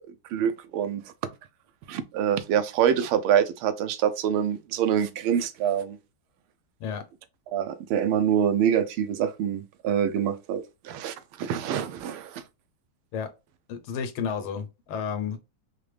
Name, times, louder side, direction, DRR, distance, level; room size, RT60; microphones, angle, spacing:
voice 1, 0.3-1.0 1.9-6.0 7.5-12.4, right 9 dB, 90° right, 1.4 m, -25 dB
voice 2, 13.7-15.4, left 7 dB, 90° left, 1.6 m, -31 dB
4.9 x 2.2 x 3.2 m
omnidirectional pair, 2.3 m